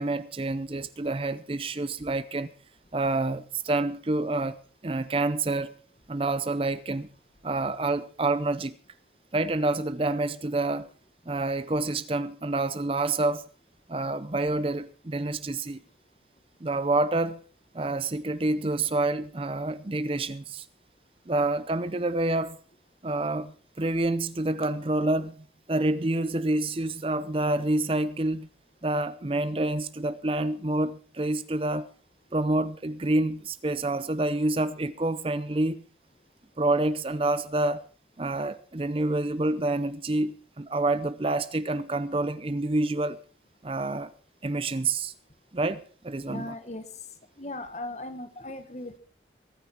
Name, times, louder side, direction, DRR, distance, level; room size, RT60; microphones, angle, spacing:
voice 1, 0.0-2.5 2.9-4.6 4.8-5.7 6.1-7.1 7.4-8.8 9.3-10.9 11.3-13.4 13.9-15.8 16.6-17.4 17.7-20.6 21.3-22.6 23.0-28.5 28.8-31.9 32.3-35.8 36.6-37.8 38.2-43.2 43.6-44.1 44.4-45.1 45.5-46.5, right 2 dB, 30° right, 0.6 m, -28 dB
voice 2, 46.2-46.8 47.4-49.0, left 1 dB, 40° left, 1.6 m, -38 dB
23.0 x 9.8 x 4.4 m
head